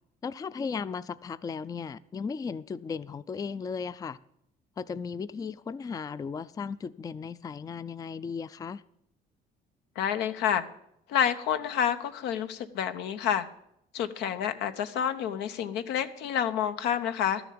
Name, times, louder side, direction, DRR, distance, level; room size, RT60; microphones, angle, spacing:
voice 1, 0.2-4.2 4.8-8.8, left 5 dB, 20° left, 0.4 m, -36 dB
voice 2, 10.0-10.6 11.1-13.5 13.9-17.4, left 9 dB, 85° left, 1.0 m, -29 dB
12.5 x 7.0 x 8.6 m
cardioid pair, 110°, 17 cm